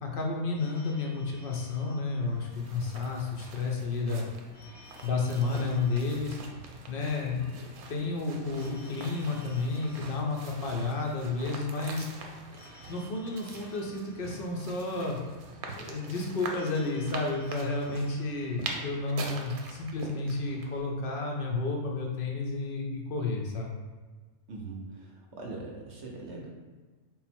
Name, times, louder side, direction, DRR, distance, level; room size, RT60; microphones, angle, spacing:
voice 1, 0.0-4.3 5.0-6.4 6.9-12.1 12.9-15.2 15.7-23.8, left 3 dB, 65° left, 0 dB, 0.5 m, -31 dB
Telephone, 0.5-3.0 4.5-7.0 8.5-11.0 12.5-15.0 16.5-19.0, left 1 dB, 90° left, 1.3 m, -56 dB
sound 1, 2.2-20.8, right 4 dB, 85° right, 1.0 m, -44 dB
voice 2, 24.5-26.5, right 3 dB, 65° right, -1 dB, 0.8 m, -41 dB
3.9 x 2.1 x 4.2 m, 1.4 s
omnidirectional pair, 1.5 m